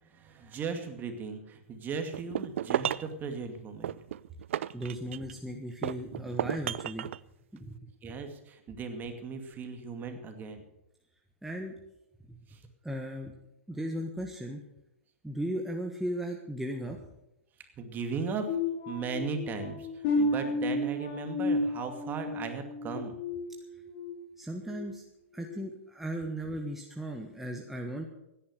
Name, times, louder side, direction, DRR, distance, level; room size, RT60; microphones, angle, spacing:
voice 1, 0.0-4.0 8.0-10.6 12.5-12.6 17.8-18.5 18.9-23.1, right 5 dB, 25° right, 6 dB, 2.3 m, -37 dB
sound 1, 2.1-3.2 3.8-5.4 5.8-7.2, right 11 dB, 70° right, 0.5 m, -33 dB
voice 2, 4.7-7.1 7.5-8.2 11.4-11.7 12.8-13.3 13.7-14.6 15.2-17.0 24.4-25.0 25.3-28.1, right 1 dB, 5° right, 1 dB, 1.4 m, -36 dB
sound 2, 18.5-24.1 24.6-24.8 25.4-25.5, left 2 dB, 50° left, 5.9 m, -32 dB
16.0 x 10.5 x 6.6 m, 0.89 s
hypercardioid pair, 120°, 7 cm